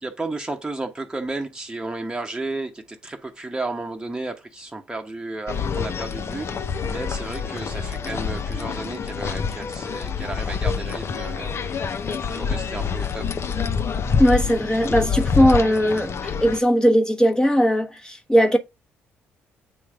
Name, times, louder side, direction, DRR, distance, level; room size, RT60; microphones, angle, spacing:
voice 1, 0.0-11.5 12.0-13.3, right 2 dB, 10° right, 1.1 m, -33 dB
sound 1, 5.5-16.6, left 6 dB, 45° left, 0.9 m, -27 dB
voice 2, 14.2-18.6, equal, 10° left, 1.3 m, -19 dB
8.6 x 3.1 x 3.7 m
hypercardioid pair, 45°, 6 cm